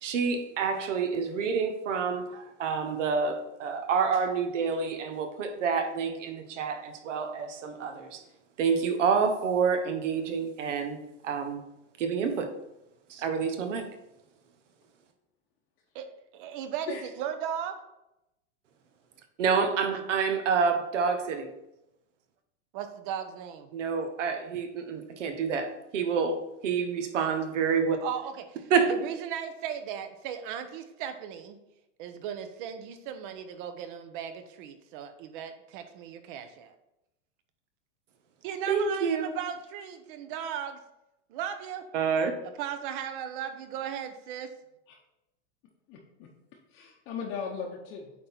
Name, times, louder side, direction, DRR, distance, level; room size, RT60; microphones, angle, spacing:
voice 1, 0.0-8.2 8.6-11.0 11.2-11.6 12.0-12.5 13.1-13.8 19.4-21.5 23.7-28.0 28.7-28.9 38.7-39.3 41.9-42.3, right 5 dB, 80° right, 6 dB, 1.3 m, -28 dB
voice 2, 16.3-17.8 22.7-23.7 28.0-28.4 28.9-31.6 32.0-36.7 38.4-40.8 41.3-41.8 42.6-44.5, right 9 dB, 45° right, 8 dB, 0.9 m, -36 dB
voice 3, 45.9-46.3 46.7-48.1, left 6 dB, 35° left, 0 dB, 0.9 m, -37 dB
8.7 x 3.9 x 4.3 m, 0.90 s
supercardioid pair, 150°, 36 cm